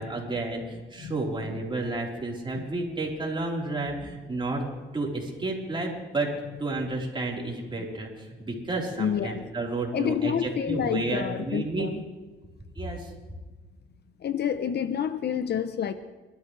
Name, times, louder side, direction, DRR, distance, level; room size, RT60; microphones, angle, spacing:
voice 1, 0.0-6.3 6.6-11.9 12.8-13.1, right 2 dB, 25° right, -2 dB, 4.4 m, -31 dB
voice 2, 9.0-9.4 9.9-12.0 14.2-15.9, left 8 dB, 55° left, 11 dB, 0.9 m, -28 dB
29.0 x 13.0 x 3.4 m, 1.3 s
cardioid pair, 90°, 20 cm